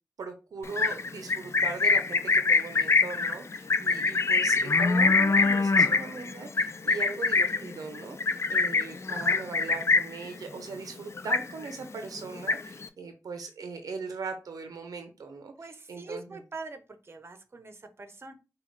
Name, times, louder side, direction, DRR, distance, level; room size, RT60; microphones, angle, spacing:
voice 1, 0.2-15.5 15.9-16.4, right 4 dB, 90° right, 6 dB, 0.6 m, -39 dB
Livestock farm animals working animals, 0.6-10.3 10.6-10.9 11.2-11.8 12.2-12.9, left 4 dB, 50° left, 0.4 m, -24 dB
voice 2, 15.6-18.3, right 3 dB, 40° right, 8 dB, 0.8 m, -43 dB
4.9 x 2.3 x 3.2 m, 0.30 s
cardioid pair, 60°, 6 cm